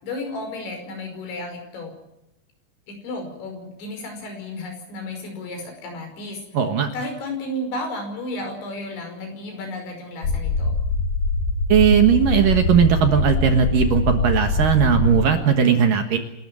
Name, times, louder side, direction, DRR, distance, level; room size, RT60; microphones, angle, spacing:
voice 1, 0.0-1.9 2.9-6.4 6.9-10.8, left 1 dB, 75° left, 5 dB, 7.7 m, -33 dB
voice 2, 6.5-6.9 11.7-16.2, right 7 dB, 60° right, 6 dB, 2.6 m, -18 dB
sound 1, 10.2-15.2, left 3 dB, 55° left, 3.0 m, -23 dB
28.0 x 13.0 x 9.1 m, 0.90 s
omnidirectional pair, 5.3 m